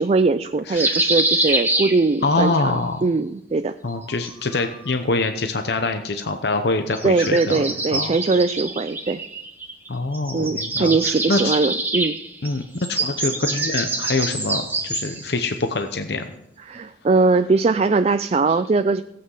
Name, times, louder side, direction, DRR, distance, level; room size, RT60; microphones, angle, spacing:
voice 1, 0.0-3.7 7.0-9.2 10.3-12.2 16.7-19.0, right 3 dB, 35° right, 11 dB, 0.4 m, -21 dB
voice 2, 0.7-1.0 2.2-3.1 3.8-7.6 7.9-8.2 9.9-11.5 12.4-16.3 18.5-18.6, left 3 dB, 65° left, 6 dB, 0.8 m, -24 dB
sound 1, 0.8-2.5 3.9-5.0 6.9-9.9 10.1-15.3, right 2 dB, 10° right, 1.5 m, -26 dB
16.5 x 8.6 x 5.5 m, 0.83 s
head